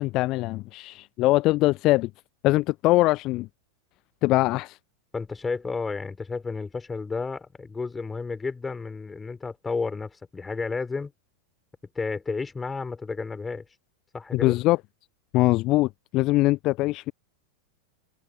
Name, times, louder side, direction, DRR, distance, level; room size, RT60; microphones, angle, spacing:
voice 1, 0.0-2.1 2.4-3.5 4.2-4.8 14.3-14.8 15.3-17.1, left 19 dB, 40° left, 0.4 m, -22 dB
voice 2, 5.1-11.1 11.9-13.6 14.1-14.6, left 4 dB, 15° left, 4.4 m, -32 dB
figure-of-eight pair, 90°, 0 cm